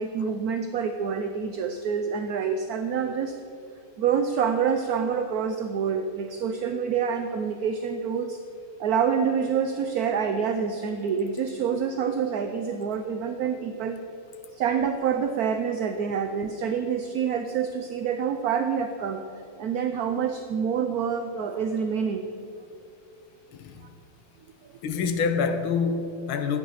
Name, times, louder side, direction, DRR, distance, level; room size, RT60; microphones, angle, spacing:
voice 1, 0.0-3.4 4.0-8.4 8.8-14.0 14.5-19.3 19.6-22.3, right 7 dB, 65° right, 1.0 m, -27 dB
voice 2, 23.5-23.9 24.8-26.6, left 5 dB, 85° left, 1.9 m, -27 dB
14.0 x 9.8 x 5.7 m
omnidirectional pair, 2.2 m